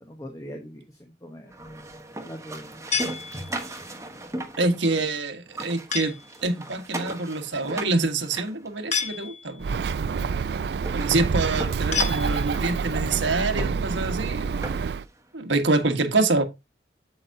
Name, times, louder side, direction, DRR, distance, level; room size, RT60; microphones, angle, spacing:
voice 1, 0.0-3.1, equal, 15° left, 1.0 m, -42 dB
sound 1, 1.5-5.2 5.5-9.2 9.9-10.0 10.4-10.5 10.8-15.1, right 2 dB, 15° right, 1.0 m, -38 dB
sound 2, 2.9-3.9 5.9-6.4 8.9-9.7 11.9-12.8, left 7 dB, 40° left, 1.1 m, -30 dB
voice 2, 4.6-6.2 6.4-9.7 10.9-14.6 15.3-16.4, right 3 dB, 75° right, 1.3 m, -26 dB
Bird, 9.6-15.0, right 5 dB, 60° right, 0.3 m, -27 dB
8.2 x 7.4 x 2.7 m
head